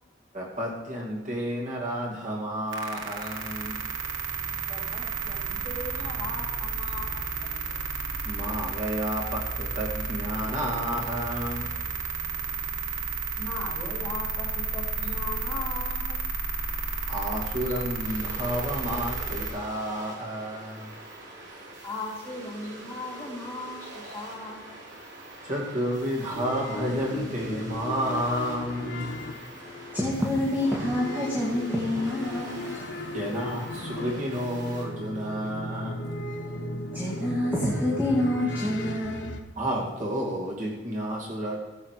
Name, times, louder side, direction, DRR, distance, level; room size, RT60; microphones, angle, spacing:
voice 1, 0.3-3.8 8.2-11.8 17.1-20.9 25.4-29.2 33.1-36.1 39.6-41.6, equal, 45° right, -3 dB, 2.5 m, -31 dB
sound 1, 2.7-19.5, right 4 dB, 85° right, 2.2 m, -32 dB
voice 2, 4.7-7.5 13.4-16.2 21.8-24.8, left 2 dB, 15° left, -6 dB, 3.5 m, -38 dB
sound 2, 18.0-34.8, right 1 dB, 70° right, 3.6 m, -44 dB
sound 3, 26.3-39.4, left 1 dB, 80° left, 1.1 m, -36 dB
voice 3, 29.6-32.8 36.4-36.5 36.9-39.4, left 1 dB, 10° right, -5 dB, 2.2 m, -27 dB
15.5 x 8.1 x 4.9 m, 1.1 s
head